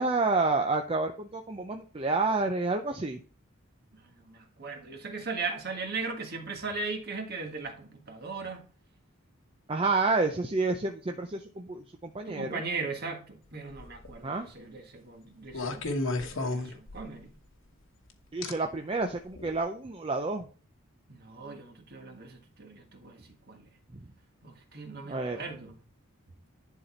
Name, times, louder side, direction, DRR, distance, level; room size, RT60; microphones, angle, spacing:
voice 1, 0.0-3.2 9.7-12.6 14.2-14.5 18.3-20.5 25.1-25.4, right 3 dB, 25° right, 0.5 m, -29 dB
voice 2, 3.9-8.6 12.3-17.4 21.1-23.7 24.4-25.8, right 4 dB, 45° right, 1.6 m, -38 dB
sound 1, 13.7-14.2 15.5-17.3 18.4-18.5 19.4-19.5, left 2 dB, 60° left, 1.2 m, -32 dB
10.5 x 4.1 x 4.4 m
head